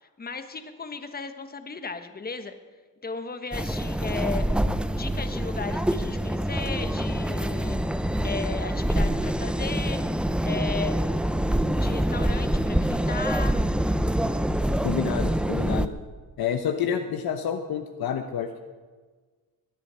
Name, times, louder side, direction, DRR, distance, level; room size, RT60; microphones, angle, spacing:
voice 1, 0.0-2.5 3.0-4.6 4.9-7.8 8.2-10.0 10.4-11.0 11.8-13.6, left 4 dB, 25° left, 8 dB, 1.2 m, -35 dB
sound 1, 3.5-15.9, right 1 dB, 5° right, 0.5 m, -25 dB
voice 2, 14.8-15.9 16.4-18.6, left 8 dB, 70° left, 5 dB, 1.1 m, -29 dB
19.5 x 10.5 x 5.6 m, 1.4 s
cardioid pair, 110°, 38 cm